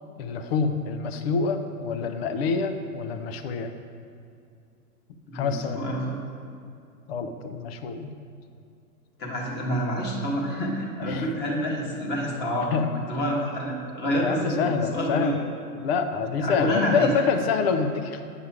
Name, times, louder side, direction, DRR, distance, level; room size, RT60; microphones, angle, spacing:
voice 1, 0.2-3.7 5.3-5.9 7.1-8.1 11.1-11.3 12.7-12.9 14.0-15.4 15.8-18.2, left 5 dB, 40° left, 7 dB, 0.7 m, -26 dB
voice 2, 5.3-6.2 9.2-15.5 16.4-17.1, equal, 20° left, -3 dB, 1.6 m, -28 dB
9.4 x 5.6 x 4.8 m, 2.5 s
hypercardioid pair, 115°, 47 cm